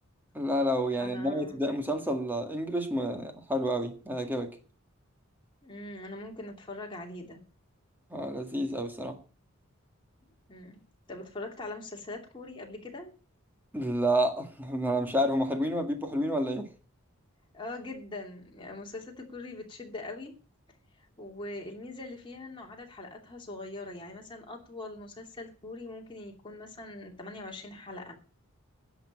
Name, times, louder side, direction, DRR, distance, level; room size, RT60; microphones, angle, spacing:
voice 1, 0.3-4.5 8.1-9.2 13.7-16.7, equal, 10° right, 1.9 m, -29 dB
voice 2, 1.0-1.6 5.6-7.4 10.5-10.8 11.1-13.1 17.5-20.3 21.2-28.2, left 2 dB, 20° left, 2.8 m, -42 dB
10.5 x 7.3 x 8.6 m
head